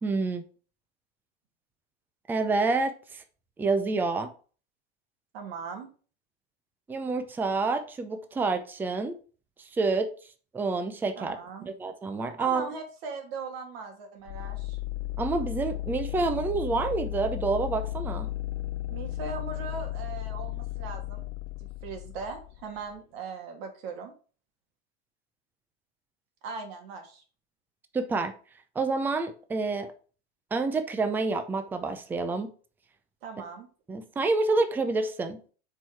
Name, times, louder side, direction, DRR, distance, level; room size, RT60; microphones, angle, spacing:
voice 1, 0.0-0.4 2.3-3.2 3.6-4.3 6.9-9.2 9.7-10.1 10.5-11.4 11.7-12.7 15.2-18.3 27.9-28.3 28.8-29.9 30.5-32.5 33.9-35.4, right 3 dB, 5° right, 8 dB, 0.5 m, -28 dB
voice 2, 5.3-5.9 11.2-11.7 12.4-14.8 18.9-21.3 21.6-24.1 26.4-27.2 33.2-33.7, right 4 dB, 60° right, 3 dB, 2.5 m, -39 dB
sound 1, 14.3-23.0, left 15 dB, 70° left, 0.5 m, -35 dB
7.3 x 4.8 x 4.7 m, 0.39 s
supercardioid pair, 150°, 33 cm